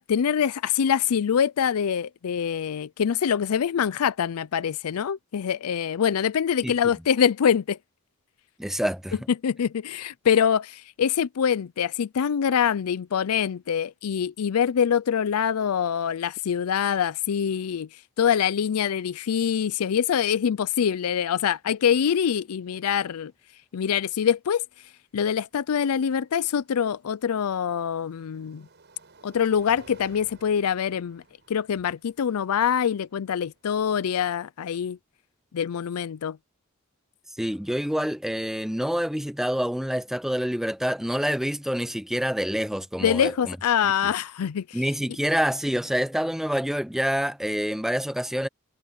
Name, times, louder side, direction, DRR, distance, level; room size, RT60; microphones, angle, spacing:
voice 1, 0.0-7.8 9.4-17.9 18.2-23.3 23.7-24.6 25.1-28.6 29.2-31.2 31.5-35.0 35.5-36.4 43.0-44.8, left 8 dB, 85° left, 0.4 m, -24 dB
voice 2, 8.6-9.2 37.4-43.6 44.7-48.5, equal, ahead, 0.7 m, -27 dB
sound 1, 20.2-20.3 20.6-21.0 22.9-23.0 26.0-34.1, right 3 dB, 55° right, 7.0 m, -55 dB
head